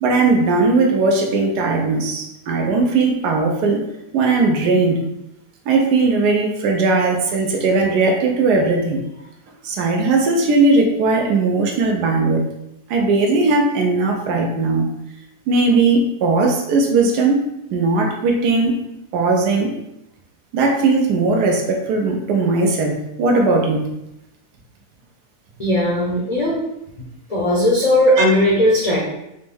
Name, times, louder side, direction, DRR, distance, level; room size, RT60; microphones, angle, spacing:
voice 1, 0.0-3.8 4.1-5.0 5.7-9.0 9.6-12.4 12.9-14.9 15.5-17.4 17.7-18.8 19.1-19.8 20.5-23.9 28.2-28.3, right 3 dB, 90° right, 2 dB, 1.2 m, -18 dB
voice 2, 25.6-26.6 27.3-29.0, left 1 dB, 55° left, -7 dB, 0.4 m, -17 dB
4.3 x 2.0 x 3.3 m, 0.85 s
omnidirectional pair, 1.7 m